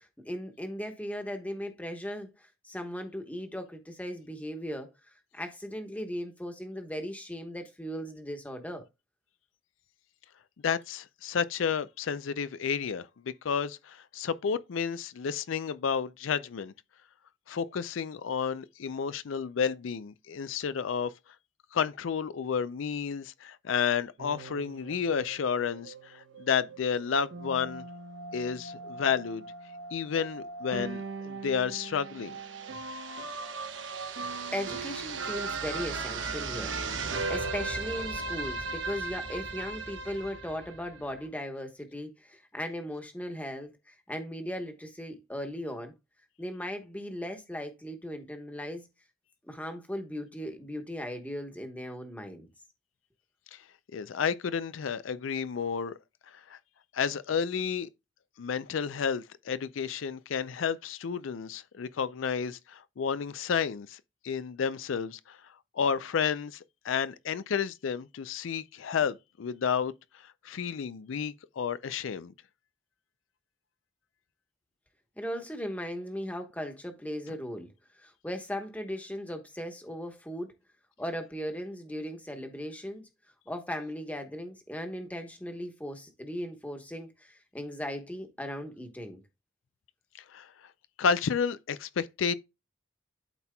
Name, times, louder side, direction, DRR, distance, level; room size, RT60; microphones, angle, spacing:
voice 1, 0.0-4.9 5.3-8.8 34.5-36.7 37.3-45.9 46.4-48.8 49.4-52.5 75.2-77.7 78.0-80.5 81.0-83.1 83.5-89.2, equal, 10° left, 1.1 m, -38 dB
voice 2, 10.6-13.1 13.4-16.7 17.5-21.1 21.7-27.8 28.3-29.5 29.9-32.4 53.9-55.9 56.5-56.6 56.9-57.9 58.4-65.4 65.7-69.9 70.4-72.3 90.3-90.5 91.0-92.3, left 6 dB, 90° left, 0.4 m, -31 dB
sound 1, 24.2-41.3, right 4 dB, 75° right, 1.1 m, -38 dB
12.0 x 4.3 x 2.2 m
head